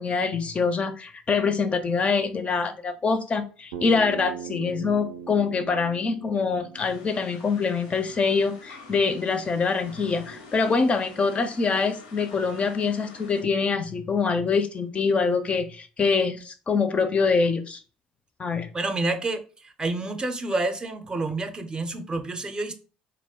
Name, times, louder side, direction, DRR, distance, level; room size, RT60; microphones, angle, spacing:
voice 1, 0.0-17.8 18.4-18.7, left 4 dB, 35° left, 0.4 m, -25 dB
Bass guitar, 3.7-8.0, right 7 dB, 80° right, 0.4 m, -40 dB
sound 1, 6.7-13.4, left 3 dB, 85° left, 0.5 m, -47 dB
voice 2, 18.7-22.7, right 2 dB, 25° right, 0.5 m, -29 dB
2.2 x 2.1 x 3.5 m
hypercardioid pair, 65°, 4 cm